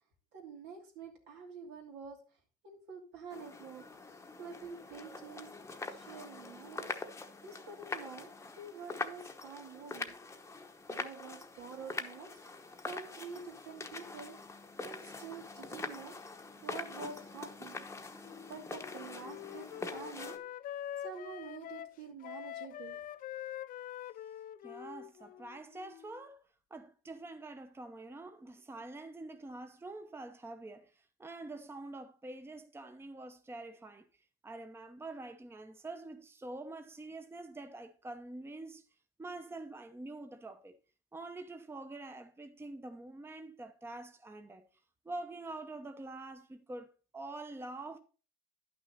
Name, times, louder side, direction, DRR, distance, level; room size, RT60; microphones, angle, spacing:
voice 1, 0.3-2.2 2.6-3.8 4.4-5.5 5.9-6.9 7.4-8.3 8.6-10.1 10.9-12.3 12.8-14.4 14.8-16.1 16.6-17.8 18.5-19.7 19.9-20.4 21.0-23.0, right 5 dB, 85° right, 2.9 m, -47 dB
sound 1, 3.3-20.4, left 3 dB, 15° left, 0.9 m, -44 dB
Wind instrument woodwind instrument, 18.2-26.2, left 12 dB, 55° left, 0.4 m, -45 dB
voice 2, 24.6-26.4 26.7-30.9 31.2-34.1 34.4-38.8 39.2-40.8 41.1-44.6 45.0-48.0, right 2 dB, 15° right, 0.8 m, -46 dB
10.5 x 6.2 x 4.1 m
cardioid pair, 110°, 17 cm